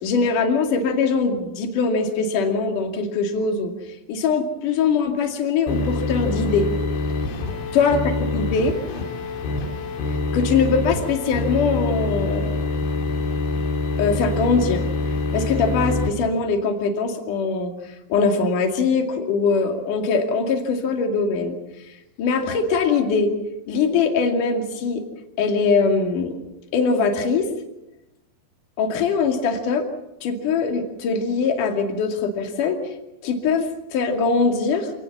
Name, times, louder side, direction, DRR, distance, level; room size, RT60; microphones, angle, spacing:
voice 1, 0.0-3.7 4.1-6.7 7.7-8.0 8.3-8.8 10.3-12.6 14.0-14.8 15.3-17.7 18.1-21.6 22.2-23.3 23.7-25.0 25.4-26.3 26.7-27.5 28.8-29.9 30.2-32.8 33.2-34.9, left 4 dB, 50° left, 4 dB, 3.6 m, -22 dB
sound 1, 5.7-16.1, left 3 dB, 75° left, 5.0 m, -25 dB
27.5 x 19.0 x 7.3 m, 0.93 s
omnidirectional pair, 5.2 m